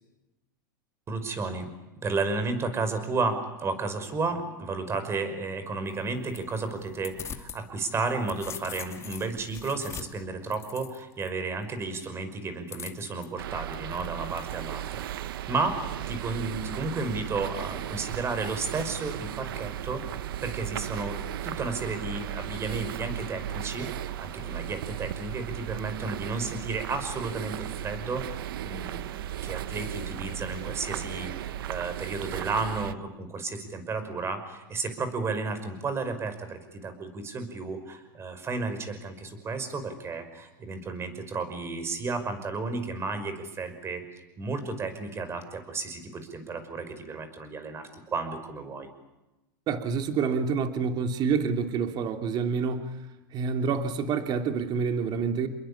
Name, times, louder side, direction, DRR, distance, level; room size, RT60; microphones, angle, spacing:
voice 1, 1.1-1.7 2.0-15.8 16.1-21.2 21.4-44.0 44.4-48.9, right 3 dB, 20° right, 9 dB, 5.5 m, -33 dB
sound 1, 5.9-7.6 8.0-11.3 12.7-13.3, left 8 dB, 25° left, 2.3 m, -42 dB
sound 2, 13.4-32.9, right 12 dB, 80° right, 1.1 m, -36 dB
voice 2, 49.7-52.9 53.3-55.5, right 5 dB, 35° right, 6 dB, 3.1 m, -27 dB
29.5 x 22.0 x 8.7 m, 1.0 s
supercardioid pair, 130°, 12 cm